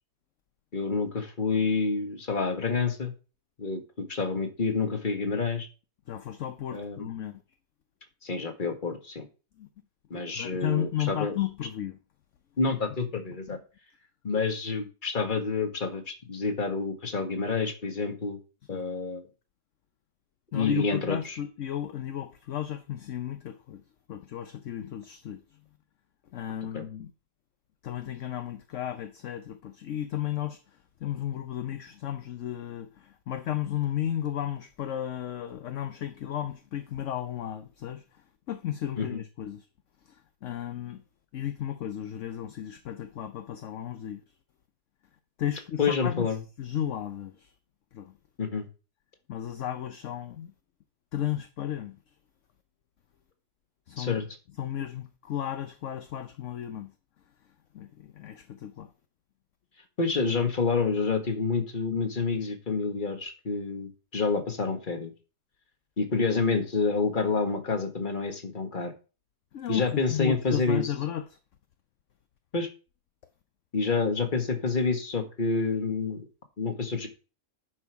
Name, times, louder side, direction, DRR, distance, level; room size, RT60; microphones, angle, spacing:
voice 1, 0.7-3.1 3.6-5.7 6.7-7.1 8.2-9.3 10.1-11.4 12.6-13.6 14.2-18.4 18.7-19.2 20.5-21.4 26.7-26.8 39.0-39.2 45.8-46.4 48.4-48.7 54.0-54.3 60.0-65.1 66.0-68.9 69.7-70.9 72.5-72.7 73.7-76.2 76.6-77.1, left 4 dB, 30° left, 1.6 m, -28 dB
voice 2, 6.1-7.4 9.6-9.7 10.1-12.0 13.5-13.6 18.7-18.8 20.5-23.8 24.1-25.4 26.3-27.1 27.8-39.7 40.0-41.0 41.3-44.2 45.4-47.5 47.9-48.1 49.3-50.5 51.1-52.0 53.9-54.3 54.6-56.9 57.7-58.9 69.5-71.4, left 11 dB, 60° left, 0.9 m, -34 dB
11.0 x 5.5 x 4.7 m
omnidirectional pair, 1.8 m